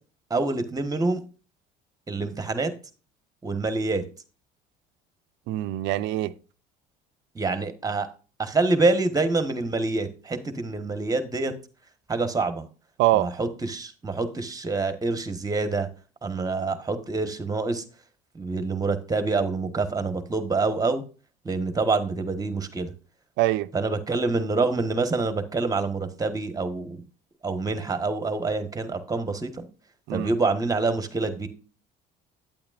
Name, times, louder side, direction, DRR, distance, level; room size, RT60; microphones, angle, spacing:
voice 1, 0.3-1.2 2.1-2.7 3.4-4.0 7.3-8.1 8.4-11.5 12.1-12.6 13.1-15.9 16.2-17.8 18.3-21.0 21.4-22.9 23.7-27.0 27.4-29.6 30.1-31.5, right 3 dB, 20° right, 1.3 m, -26 dB
voice 2, 5.5-6.3 13.0-13.3 23.4-23.7 30.1-30.3, right 15 dB, 70° right, 0.5 m, -24 dB
8.9 x 8.7 x 2.5 m
supercardioid pair, 80°, 19 cm